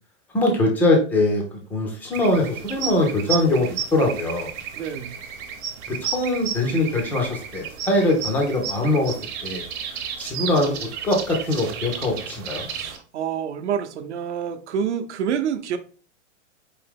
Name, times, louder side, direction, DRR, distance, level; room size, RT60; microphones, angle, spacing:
voice 1, 0.3-1.4 1.7-4.5 5.9-9.1 9.4-9.6 9.9-10.8 11.0-12.7, left 1 dB, 5° left, 1 dB, 0.4 m, -22 dB
sound 1, 2.1-13.0, right 8 dB, 30° right, 0.8 m, -33 dB
voice 2, 4.7-5.2 12.7-15.8, right 8 dB, 65° right, 9 dB, 0.8 m, -28 dB
4.7 x 2.8 x 3.6 m, 0.38 s
hypercardioid pair, 145°, 37 cm